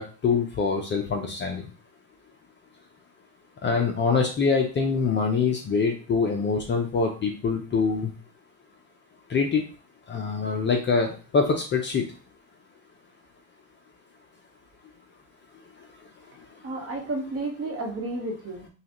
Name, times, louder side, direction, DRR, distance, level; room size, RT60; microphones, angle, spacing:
voice 1, 0.0-1.6 3.6-8.1 9.3-9.6 10.1-12.0, left 5 dB, 25° left, 2 dB, 0.6 m, -24 dB
voice 2, 16.6-18.7, right 2 dB, 30° right, 1 dB, 1.1 m, -32 dB
5.5 x 2.4 x 2.9 m, 0.37 s
supercardioid pair, 125°, 43 cm